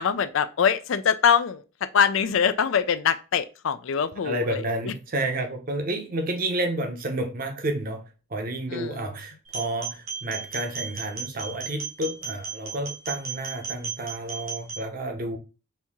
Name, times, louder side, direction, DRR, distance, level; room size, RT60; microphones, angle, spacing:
voice 1, 0.0-1.6 1.9-4.9 8.7-9.0, left 7 dB, 65° left, 0.4 m, -23 dB
voice 2, 4.2-8.0 8.3-15.4, right 1 dB, 40° right, 0.8 m, -30 dB
sound 1, 9.4-14.8, right 5 dB, 80° right, 1.4 m, -35 dB
4.4 x 2.7 x 3.6 m
head